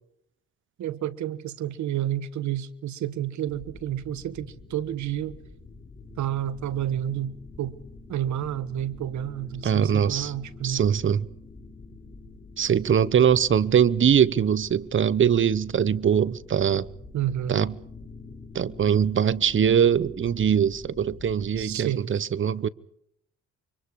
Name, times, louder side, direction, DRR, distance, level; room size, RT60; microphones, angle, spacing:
voice 1, 0.8-5.4 6.2-7.8 8.1-10.8 17.1-17.6 21.6-22.1, right 11 dB, 70° right, 1.4 m, -30 dB
sound 1, 3.5-21.6, left 3 dB, 20° left, 6.5 m, -46 dB
voice 2, 9.6-10.3 10.6-11.3 12.6-16.9 17.5-17.7 18.5-22.7, right 8 dB, 40° right, 0.9 m, -22 dB
29.0 x 24.5 x 4.8 m
cardioid pair, 90°, 30 cm